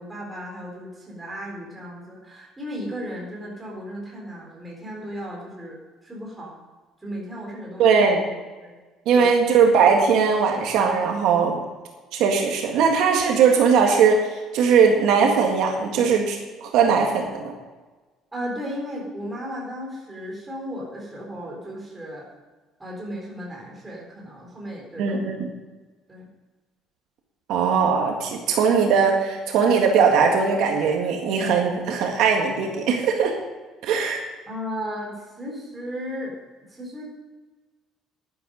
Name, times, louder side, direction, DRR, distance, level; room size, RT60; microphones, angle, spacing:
voice 1, 0.0-6.6 7.0-7.9 8.6-8.7 9.1-9.2 18.3-22.3 22.8-25.2 26.1-26.3 34.5-36.4 36.7-37.0, equal, 10° right, -3 dB, 3.7 m, -35 dB
voice 2, 7.8-8.2 9.1-11.6 12.1-17.5 25.0-25.5 27.5-33.3 33.8-34.2, right 6 dB, 70° right, 1 dB, 1.8 m, -19 dB
11.0 x 10.5 x 5.2 m, 1.3 s
cardioid pair, 165°, 0 cm